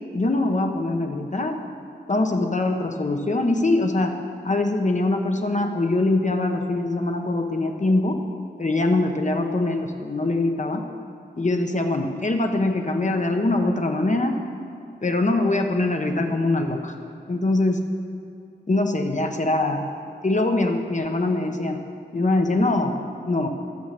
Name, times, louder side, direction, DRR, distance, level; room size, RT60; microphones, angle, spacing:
voice 1, 0.1-1.6 2.1-4.1 4.4-8.2 8.6-10.8 11.4-14.4 15.0-16.9 17.3-17.8 18.7-19.8 20.2-21.8 22.1-22.9 23.3-23.5, left 2 dB, 40° left, 4 dB, 1.0 m, -23 dB
12.0 x 7.3 x 6.6 m, 2.6 s
wide cardioid pair, 75°, 18 cm